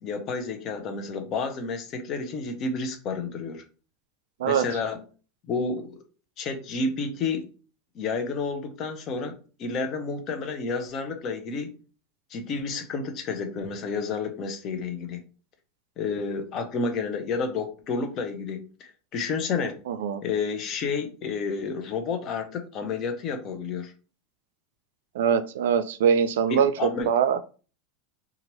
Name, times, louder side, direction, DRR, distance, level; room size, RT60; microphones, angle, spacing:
voice 1, 0.0-3.6 4.4-5.0 5.5-6.0 6.4-7.5 7.9-11.8 12.3-15.2 16.0-19.8 20.2-23.9 26.5-27.1, left 4 dB, 45° left, 6 dB, 0.6 m, -30 dB
voice 2, 19.9-20.2 25.1-27.4, right 7 dB, 90° right, 11 dB, 0.3 m, -23 dB
2.9 x 2.4 x 3.0 m, 0.36 s
supercardioid pair, 125°, 0 cm